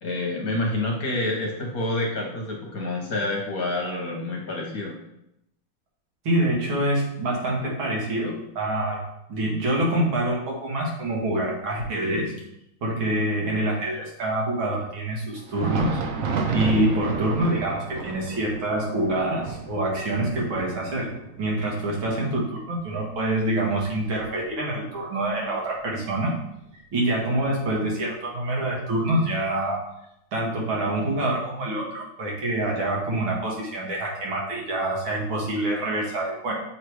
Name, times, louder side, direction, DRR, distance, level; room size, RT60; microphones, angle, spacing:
voice 1, 0.0-5.0, left 2 dB, 55° left, -1 dB, 1.3 m, -28 dB
voice 2, 6.2-9.0 9.3-12.3 12.8-16.0 16.5-21.1 21.4-26.4 26.9-29.8 30.3-36.5, right 1 dB, 85° right, -2 dB, 2.3 m, -26 dB
Thunder, 15.4-24.8 25.2-25.3 26.0-26.2 27.2-27.3, right 5 dB, 70° right, 0.8 m, -32 dB
6.8 x 3.3 x 4.6 m, 0.81 s
omnidirectional pair, 2.2 m